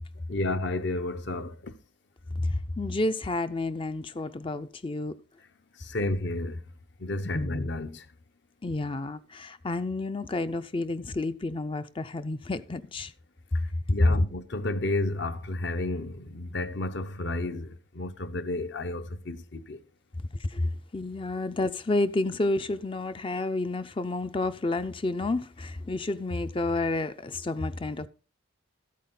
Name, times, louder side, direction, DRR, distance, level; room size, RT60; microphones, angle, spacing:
voice 1, 0.3-1.7 5.8-6.6 7.0-8.0 13.9-19.8, left 2 dB, 60° left, 0.9 m, -31 dB
voice 2, 2.4-5.1 7.3-7.7 8.6-13.1 14.1-14.2 20.4-28.1, left 2 dB, 25° left, 0.4 m, -30 dB
13.5 x 8.5 x 3.8 m
head